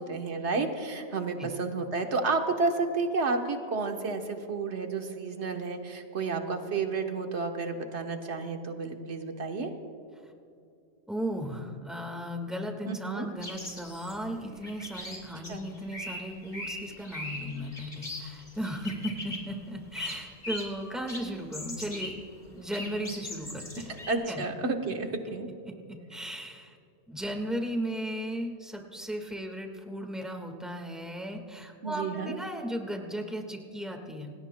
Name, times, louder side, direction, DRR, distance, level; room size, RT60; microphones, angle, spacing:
voice 1, 0.0-9.7 12.8-13.3 15.5-15.6 23.9-25.5 31.8-32.4, right 3 dB, 90° right, 4 dB, 1.5 m, -31 dB
voice 2, 11.1-22.2 22.5-23.9 24.3-24.4 25.6-26.7 27.1-34.3, equal, ahead, 3 dB, 1.6 m, -36 dB
sound 1, 13.4-19.6 19.9-20.8 21.1-22.2 22.5-24.1, left 1 dB, 45° left, 2.9 m, -40 dB
27.0 x 19.0 x 2.2 m, 2.7 s
omnidirectional pair, 1.1 m